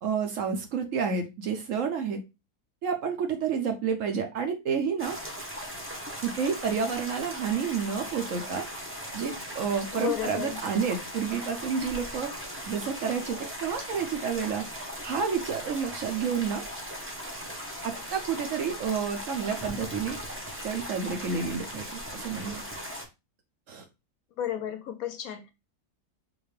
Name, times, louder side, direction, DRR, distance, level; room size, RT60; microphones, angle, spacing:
voice 1, 0.0-2.2 2.8-5.2 6.2-8.6 9.1-12.3 12.7-14.6 15.0-16.6 18.1-20.2 20.6-22.6 23.7-23.9, right 6 dB, 65° right, 0.9 m, -30 dB
sound 1, 5.0-23.1, equal, 15° right, 0.4 m, -38 dB
voice 2, 9.9-10.6 24.4-25.5, left 11 dB, 70° left, 0.9 m, -32 dB
5.0 x 2.5 x 3.2 m
omnidirectional pair, 1.7 m